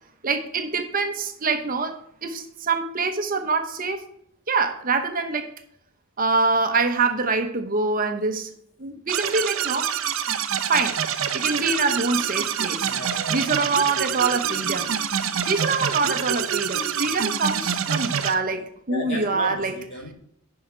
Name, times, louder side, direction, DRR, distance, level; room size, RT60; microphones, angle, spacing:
voice 1, 0.2-1.9 2.2-4.0 4.5-5.5 6.2-8.5 8.8-9.9 10.7-11.0 11.3-12.9 13.3-15.2 15.4-19.7, right 4 dB, 40° right, 7 dB, 1.0 m, -25 dB
sound 1, 9.1-18.3, right 8 dB, 70° right, 0.7 m, -26 dB
voice 2, 12.8-13.4 18.9-20.1, left 1 dB, 60° left, 2 dB, 2.4 m, -34 dB
10.0 x 5.7 x 4.5 m, 0.69 s
head